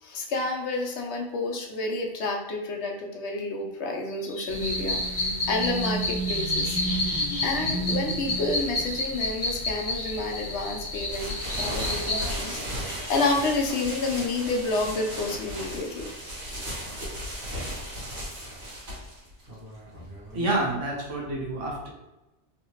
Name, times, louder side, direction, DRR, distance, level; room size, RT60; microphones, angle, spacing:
voice 1, 0.0-6.8 7.0-16.1, left 3 dB, 70° left, 1 dB, 0.9 m, -30 dB
sound 1, 4.5-12.3, equal, 45° left, 1.3 m, -29 dB
sound 2, 11.1-20.7, equal, 70° right, 1.8 m, -36 dB
voice 2, 20.3-21.9, right 2 dB, 90° right, -1 dB, 1.2 m, -28 dB
3.4 x 2.8 x 2.9 m, 0.98 s
omnidirectional pair, 1.2 m